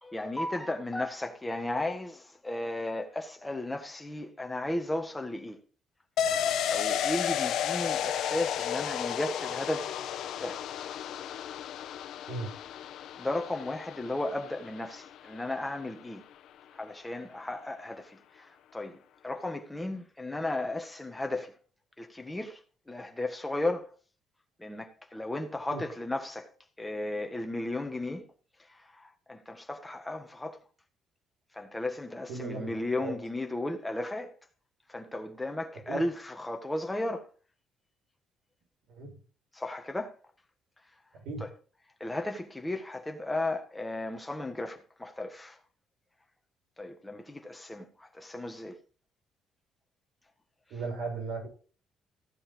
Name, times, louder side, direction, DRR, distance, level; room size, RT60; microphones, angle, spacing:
voice 1, 0.0-5.6 6.7-9.9 10.4-10.6 13.2-16.2 16.7-21.6 22.0-22.6 22.9-23.9 24.6-26.5 26.8-28.3 28.6-30.6 31.5-34.3 34.9-37.3 39.5-40.1 42.0-45.6 46.8-48.8, left 2 dB, 5° left, 1.6 m, -35 dB
sound 1, 6.2-15.6 15.9-16.0, left 9 dB, 60° left, 1.1 m, -33 dB
voice 2, 32.3-33.1 35.9-36.0 38.9-39.1 41.1-41.5 50.7-51.5, right 3 dB, 75° right, 6.9 m, -37 dB
15.0 x 7.7 x 3.9 m
cardioid pair, 165°, 0 cm